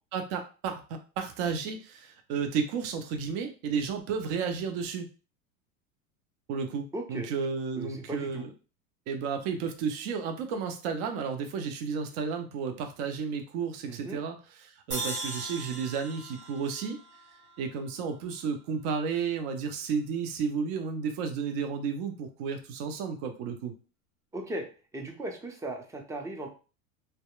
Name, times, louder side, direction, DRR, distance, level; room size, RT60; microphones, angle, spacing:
voice 1, 0.1-5.1 6.5-8.5 9.1-17.0 17.6-23.7, right 6 dB, 55° right, 6 dB, 0.6 m, -32 dB
voice 2, 6.9-7.3 7.8-8.4 13.9-14.2 24.3-24.6 24.9-26.5, right 1 dB, 10° right, 2 dB, 0.4 m, -37 dB
sound 1, 14.9-18.2, right 2 dB, 25° right, 1.2 m, -39 dB
2.7 x 2.2 x 2.2 m, 0.35 s
hypercardioid pair, 90°, 43 cm